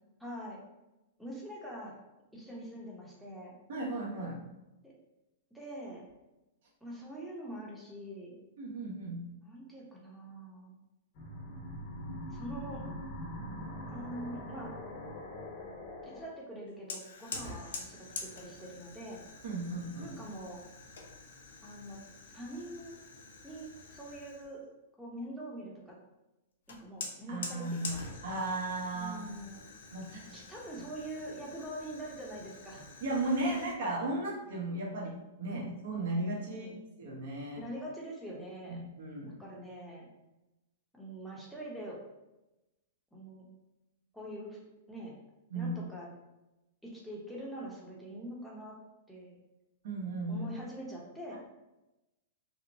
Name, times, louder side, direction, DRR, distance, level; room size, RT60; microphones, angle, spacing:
voice 1, 0.2-0.6 1.2-2.0 2.3-3.6 4.8-4.9 5.5-6.0 6.8-8.4 9.4-10.8 12.3-12.8 13.9-14.7 16.0-19.2 20.0-20.6 21.6-22.0 22.3-23.0 23.4-24.6 25.0-26.0 26.7-28.0 28.9-29.7 30.3-32.9 33.4-33.5 34.9-35.1 35.5-35.7 36.5-36.8 37.6-38.8 39.2-40.1 40.9-42.0 43.1-43.5 44.1-44.6 44.9-45.1 45.5-46.1 46.8-48.8 49.1-49.4 50.3-51.4, right 1 dB, ahead, -4 dB, 0.7 m, -44 dB
voice 2, 3.7-4.4 8.6-9.2 19.4-20.2 27.3-27.9 28.2-29.2 29.9-30.4 33.0-35.1 35.4-36.7 37.0-37.6 38.7-39.4 45.5-45.8 49.8-50.5, right 2 dB, 65° right, -2 dB, 0.8 m, -35 dB
sound 1, 11.2-16.3, left 1 dB, 50° left, 0.8 m, -42 dB
Fire, 16.9-24.5 26.7-33.7, left 3 dB, 85° left, 0.5 m, -46 dB
2.8 x 2.0 x 2.6 m, 0.98 s
hypercardioid pair, 140°, 0 cm